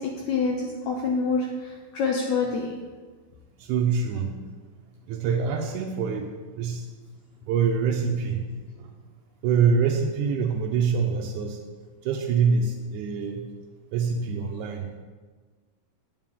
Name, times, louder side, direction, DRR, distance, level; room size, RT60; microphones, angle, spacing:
voice 1, 0.0-2.7, left 4 dB, 80° left, 0 dB, 1.7 m, -26 dB
voice 2, 3.6-4.4 5.1-6.9 7.5-8.5 8.8-8.9 9.4-11.6 12.0-13.5 13.9-14.9, right 6 dB, 85° right, 2 dB, 1.7 m, -25 dB
8.9 x 7.4 x 3.6 m, 1.4 s
omnidirectional pair, 4.1 m